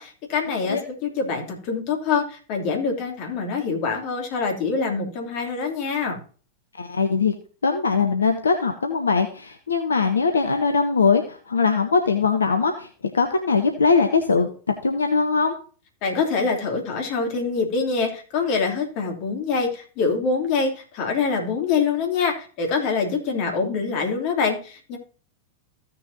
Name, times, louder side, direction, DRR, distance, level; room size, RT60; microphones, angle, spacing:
voice 1, 0.0-6.2 16.0-25.0, left 5 dB, 45° left, 2 dB, 3.0 m, -25 dB
voice 2, 6.8-7.3 7.6-12.9 13.1-14.5 14.8-15.5, left 4 dB, 75° left, 6 dB, 1.1 m, -21 dB
15.5 x 6.7 x 2.8 m, 0.40 s
figure-of-eight pair, 90°, 0 cm